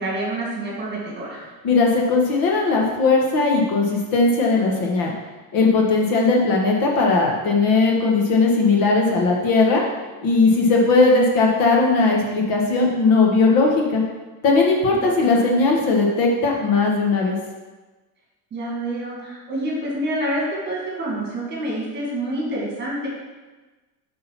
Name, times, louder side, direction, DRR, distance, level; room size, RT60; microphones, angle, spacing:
voice 1, 0.0-1.4 14.9-15.4 18.5-23.1, right 1 dB, 25° right, -4 dB, 2.0 m, -27 dB
voice 2, 1.6-5.1 5.5-9.8 10.2-14.0 14.4-17.4, left 3 dB, 50° left, -1 dB, 1.4 m, -18 dB
8.4 x 3.9 x 5.8 m, 1.2 s
cardioid pair, 175°, 44 cm